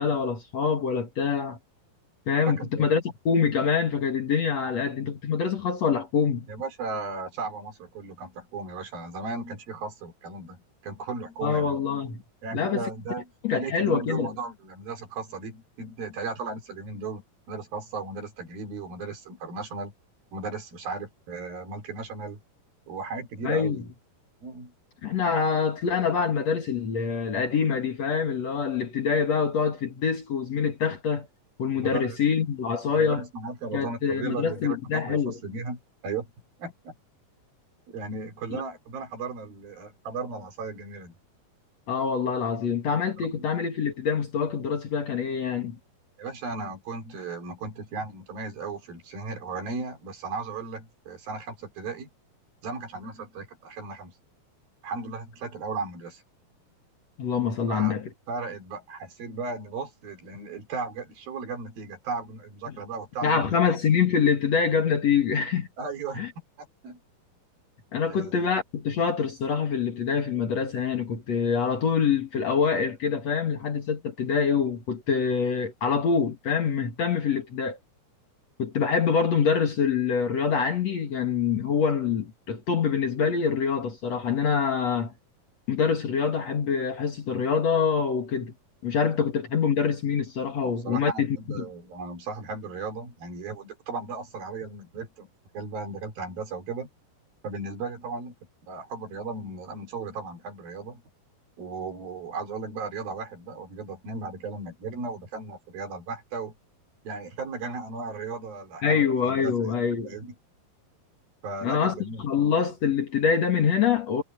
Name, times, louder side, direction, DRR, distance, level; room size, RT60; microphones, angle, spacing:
voice 1, 0.0-1.6 2.3-6.5 11.4-12.2 12.5-12.8 13.4-14.3 23.4-23.8 25.0-31.3 31.6-33.2 33.7-35.4 41.9-45.8 57.2-58.1 63.2-65.7 66.2-66.3 67.9-77.8 78.6-85.1 85.7-88.5 88.8-91.7 108.8-110.1 111.6-114.2, left 6 dB, 50° left, 2.6 m, -25 dB
voice 2, 2.5-2.9 4.8-4.9 6.5-11.8 12.4-19.9 20.3-22.4 22.9-23.9 24.4-24.7 31.7-32.2 32.9-36.3 36.6-37.0 37.9-41.2 43.3-43.5 46.2-52.1 52.6-54.1 54.8-56.2 57.7-58.0 58.3-63.5 65.8-66.3 66.6-67.0 68.1-68.5 90.6-95.3 95.5-96.9 97.4-98.3 98.7-101.0 101.6-106.5 107.0-109.5 110.0-110.3 111.4-112.2, right 4 dB, 70° right, 6.0 m, -36 dB
omnidirectional pair, 4.4 m